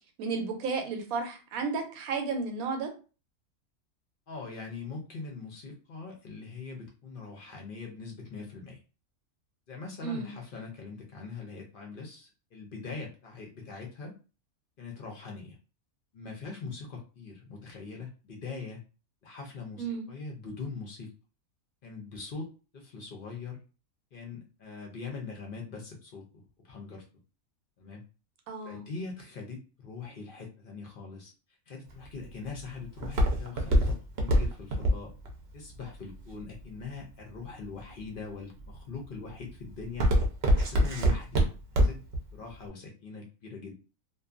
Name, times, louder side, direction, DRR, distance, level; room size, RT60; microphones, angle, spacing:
voice 1, 0.2-2.9 10.0-10.3 19.8-20.1 28.5-28.8, right 4 dB, 90° right, 5 dB, 1.1 m, -33 dB
voice 2, 4.3-8.8 9.7-14.1 14.8-15.6 16.1-18.8 19.2-21.1 21.8-23.6 24.1-27.0 27.8-28.0 28.6-31.3 31.7-35.1 35.5-40.1 40.5-41.4 41.7-42.0 42.3-43.7, left 4 dB, 55° left, 0 dB, 0.6 m, -42 dB
Walk footsteps, 31.9-37.0 37.6-38.1 38.6-38.9 39.3-42.2 42.5-42.6, equal, 60° right, 0.7 m, -24 dB
2.6 x 2.2 x 2.4 m, 0.34 s
omnidirectional pair, 1.5 m